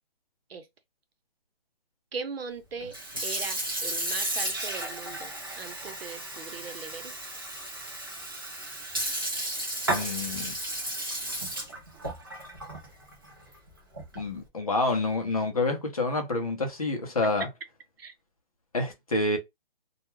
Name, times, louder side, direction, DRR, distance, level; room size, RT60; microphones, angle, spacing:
voice 1, 2.1-2.9 3.2-7.1 18.0-18.1, right 5 dB, 80° right, 0.8 m, -39 dB
Sink (filling or washing) / Fill (with liquid), 2.8-14.4, right 1 dB, 25° right, 0.5 m, -34 dB
voice 2, 9.9-10.5 14.2-17.5 18.7-19.4, left 2 dB, 40° left, 0.6 m, -28 dB
2.3 x 2.2 x 3.0 m
hypercardioid pair, 180°, 30 cm